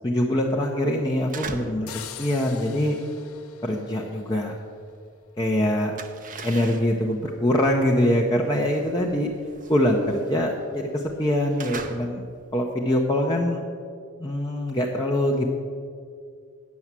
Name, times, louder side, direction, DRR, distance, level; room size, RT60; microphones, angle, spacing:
voice 1, 0.0-3.0 3.6-4.6 5.4-5.9 6.4-9.3 9.7-12.2 12.5-13.6 14.2-15.5, left 1 dB, 20° left, -1 dB, 0.7 m, -23 dB
sound 1, 1.1-1.9 2.2-5.1 5.4-12.6, right 4 dB, 40° right, 0.7 m, -41 dB
sound 2, 1.9-4.7, left 9 dB, 80° left, 0.7 m, -43 dB
9.5 x 7.0 x 7.4 m, 2.2 s
head